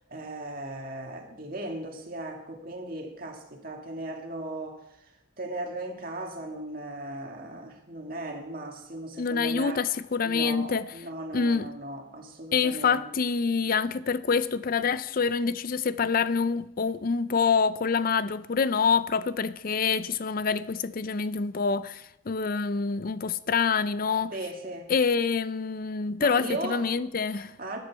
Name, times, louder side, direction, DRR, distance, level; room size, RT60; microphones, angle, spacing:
voice 1, 0.1-9.8 10.2-13.1 24.3-24.9 26.2-26.9 27.3-27.8, right 1 dB, 45° right, 1.8 m, -37 dB
voice 2, 9.2-10.9 11.3-11.7 12.5-24.3 24.9-27.5, left 5 dB, 40° left, 0.4 m, -26 dB
13.0 x 10.5 x 4.6 m
head